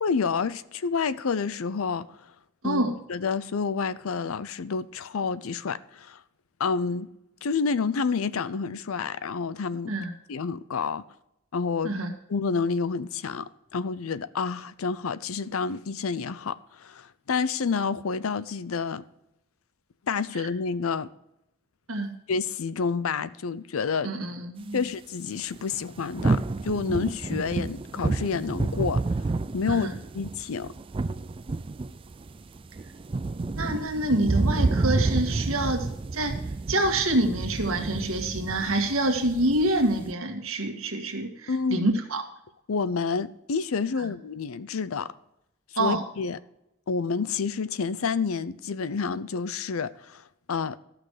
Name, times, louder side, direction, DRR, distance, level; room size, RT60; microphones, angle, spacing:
voice 1, 0.0-2.2 2.6-2.8 3.1-6.2 6.6-7.1 7.4-9.9 10.3-11.0 11.5-11.9 12.3-19.0 20.1-21.1 22.3-24.1 24.7-29.0 29.5-30.7 41.5-41.8 42.7-45.1 45.7-46.4 46.9-50.2 50.5-50.8, left 5 dB, 75° left, 0.5 m, -29 dB
voice 2, 2.6-2.9 9.9-10.1 11.8-12.1 21.9-22.1 24.0-24.8 29.7-29.9 33.6-36.4 36.7-42.3 44.0-44.1 45.8-46.0, right 1 dB, 75° right, 1.8 m, -27 dB
sound 1, 25.6-40.1, right 3 dB, 25° right, 0.3 m, -29 dB
14.0 x 6.1 x 4.9 m
head